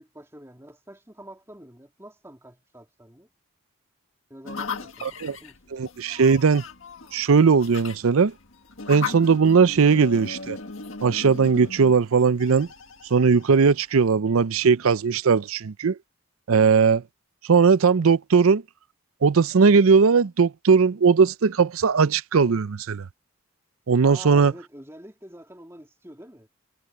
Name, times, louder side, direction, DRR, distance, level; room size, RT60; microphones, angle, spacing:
voice 1, 0.0-3.3 4.3-5.8 24.0-26.5, right 1 dB, 10° right, 2.8 m, -46 dB
sound 1, 4.5-14.1, left 4 dB, 65° left, 1.8 m, -37 dB
voice 2, 5.0-5.4 5.7-6.6 7.1-8.3 8.9-10.6 11.0-12.7 13.1-15.9 16.5-17.0 17.5-18.6 19.2-23.0 23.9-24.5, right 5 dB, 75° right, 0.5 m, -19 dB
head